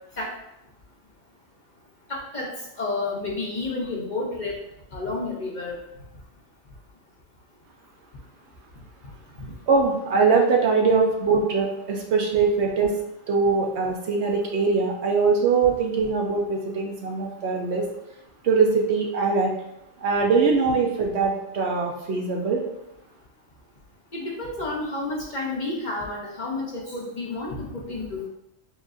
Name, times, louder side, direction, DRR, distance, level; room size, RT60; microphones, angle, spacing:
voice 1, 2.1-2.5 2.8-4.6 4.9-5.8 9.4-9.5 24.1-28.3, left 2 dB, 40° left, -3 dB, 0.8 m, -30 dB
voice 2, 9.7-12.9 13.3-17.8 18.4-19.5 20.0-22.6, right 4 dB, 65° right, 0 dB, 0.9 m, -22 dB
7.0 x 2.6 x 2.5 m, 0.83 s
omnidirectional pair, 1.3 m